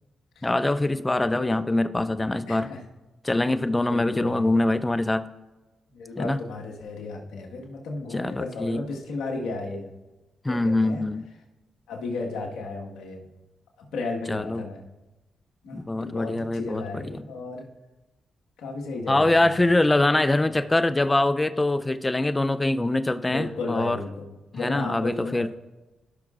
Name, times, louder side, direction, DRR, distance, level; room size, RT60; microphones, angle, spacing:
voice 1, 0.4-2.7 3.2-5.3 6.2-6.4 8.1-8.8 10.4-11.2 14.3-14.7 15.7-17.2 19.1-24.0 24.6-25.5, left 2 dB, 20° left, 13 dB, 0.4 m, -24 dB
voice 2, 2.5-2.8 3.9-4.5 5.9-9.9 10.5-11.0 11.9-13.2 13.9-14.8 15.6-17.7 18.6-19.6 20.0-20.3 23.3-25.5, left 3 dB, 85° left, 0 dB, 1.5 m, -34 dB
16.0 x 6.0 x 2.4 m, 1.1 s
supercardioid pair, 60°, 0 cm